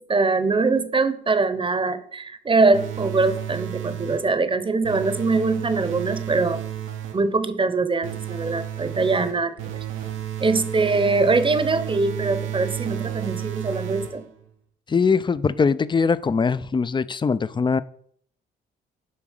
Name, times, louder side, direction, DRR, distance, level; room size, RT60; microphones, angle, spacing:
voice 1, 0.0-6.6 7.1-9.8 10.4-14.2, right 3 dB, 25° right, 12 dB, 0.9 m, -22 dB
sound 1, 2.7-4.4 4.8-7.3 8.0-14.4, right 11 dB, 85° right, 1.1 m, -32 dB
voice 2, 14.9-17.8, left 5 dB, 25° left, 17 dB, 0.5 m, -21 dB
7.2 x 4.9 x 6.5 m, 0.62 s
cardioid pair, 90°, 20 cm